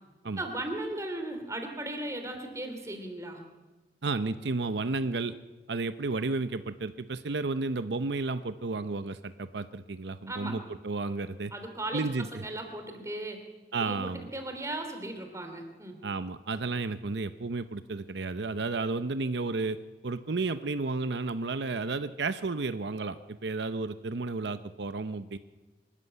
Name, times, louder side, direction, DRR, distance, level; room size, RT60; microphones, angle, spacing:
voice 1, 0.4-3.4 10.3-10.6 11.5-12.0 12.3-13.4 13.8-16.0, right 1 dB, 15° right, 5 dB, 3.0 m, -37 dB
voice 2, 4.0-5.4 5.7-11.5 11.9-12.3 13.7-14.3 16.0-19.8 20.0-25.4, right 3 dB, 80° right, 12 dB, 0.7 m, -32 dB
24.0 x 13.5 x 9.6 m, 1.2 s
head